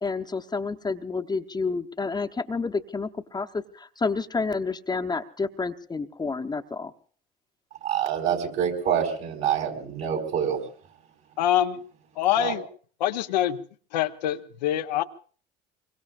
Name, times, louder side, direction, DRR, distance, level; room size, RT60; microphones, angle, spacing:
voice 1, 0.0-6.9, left 4 dB, 20° left, 5 dB, 0.9 m, -29 dB
voice 2, 7.8-10.6 12.4-12.5, right 8 dB, 65° right, 2 dB, 4.5 m, -26 dB
voice 3, 11.4-11.8 12.2-12.6 13.0-13.6 13.9-15.0, left 12 dB, 85° left, 8 dB, 0.8 m, -25 dB
25.0 x 23.0 x 2.5 m, 0.43 s
hypercardioid pair, 75°, 21 cm